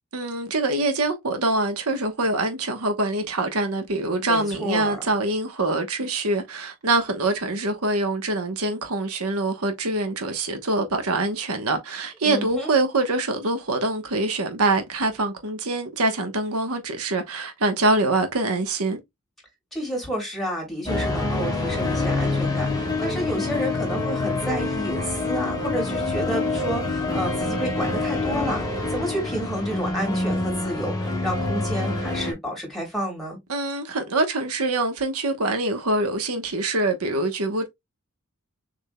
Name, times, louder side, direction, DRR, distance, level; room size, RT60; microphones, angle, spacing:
voice 1, 0.1-19.0 33.5-37.7, right 2 dB, 75° right, 1.1 m, -24 dB
voice 2, 4.2-5.1 12.2-12.7 19.7-33.4, right 1 dB, ahead, 3.1 m, -30 dB
sound 1, 20.9-32.3, left 2 dB, 15° left, 1.8 m, -26 dB
6.7 x 3.6 x 2.2 m
head